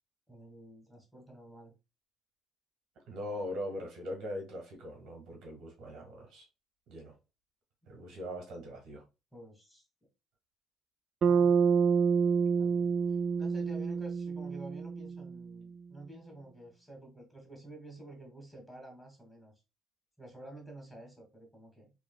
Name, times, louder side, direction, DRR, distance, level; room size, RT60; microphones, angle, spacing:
voice 1, 0.3-1.7 9.3-9.8 11.2-11.5 12.6-12.9 13.4-19.5 20.2-21.9, right 1 dB, 5° left, 2.2 m, -50 dB
voice 2, 3.1-6.5 6.9-7.1 7.9-9.0, equal, 70° right, 1.7 m, -41 dB
Bass guitar, 11.2-15.6, right 6 dB, 55° right, 0.3 m, -28 dB
4.8 x 3.3 x 2.3 m
supercardioid pair, 75°, 0 cm